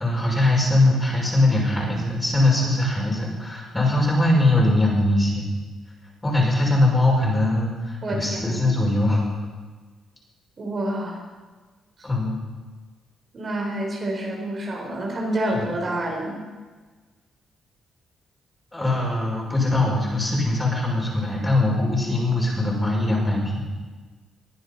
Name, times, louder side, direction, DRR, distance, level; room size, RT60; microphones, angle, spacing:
voice 1, 0.0-5.5 6.2-9.2 12.0-12.4 15.5-15.6 18.7-23.6, left 2 dB, 15° left, -2 dB, 5.9 m, -21 dB
voice 2, 8.0-8.5 10.6-11.2 13.3-16.4, right 1 dB, 40° right, 0 dB, 4.3 m, -28 dB
21.0 x 10.0 x 5.6 m, 1.3 s
cardioid pair, 90°, 0 cm